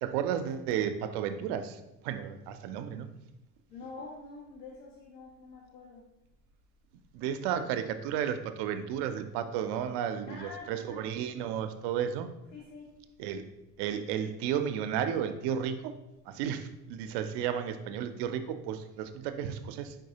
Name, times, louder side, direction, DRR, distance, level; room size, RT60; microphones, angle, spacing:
voice 1, 0.0-3.1 7.1-12.3 13.2-13.5 13.8-16.0 16.3-19.9, right 9 dB, 60° right, 9 dB, 0.5 m, -33 dB
voice 2, 3.7-6.0 10.3-11.0 12.5-12.9, left 3 dB, 80° left, -2 dB, 0.8 m, -46 dB
4.6 x 3.7 x 2.8 m, 0.96 s
hypercardioid pair, 55°, 47 cm